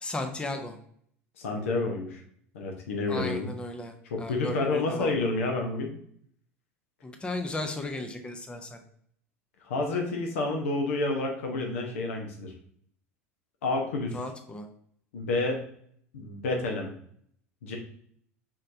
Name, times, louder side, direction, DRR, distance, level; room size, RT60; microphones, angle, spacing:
voice 1, 0.0-0.8 3.1-5.1 7.0-8.8 14.1-14.7, left 2 dB, 15° left, 5 dB, 0.6 m, -35 dB
voice 2, 1.4-2.2 2.5-3.5 4.1-5.9 9.6-12.5 13.6-14.2 15.1-15.6 16.1-16.9 17.6-17.8, left 2 dB, 70° left, 1 dB, 0.9 m, -29 dB
5.5 x 3.2 x 2.6 m, 0.64 s
figure-of-eight pair, 75°, 8 cm